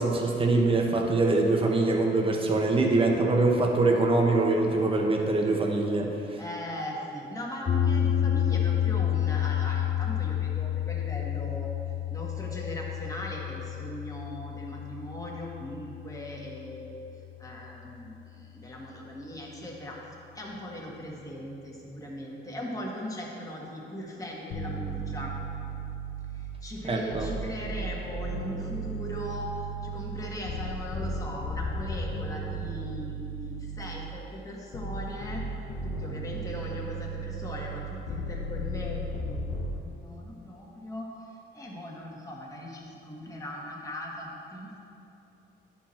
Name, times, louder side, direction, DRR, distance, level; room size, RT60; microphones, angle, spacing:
voice 1, 0.0-6.4 26.8-27.3, right 2 dB, 25° right, 1 dB, 1.0 m, -24 dB
voice 2, 6.4-17.0 17.4-20.0 20.3-25.3 26.3-35.4 35.8-44.8, left 1 dB, 15° left, -3 dB, 1.5 m, -39 dB
sound 1, 7.7-17.9, left 10 dB, 40° left, 0.5 m, -30 dB
sound 2, 24.5-26.7 27.1-34.2 34.7-39.7, right 2 dB, 70° left, 0.9 m, -35 dB
10.0 x 4.7 x 4.3 m, 2.9 s
cardioid pair, 90°, 20 cm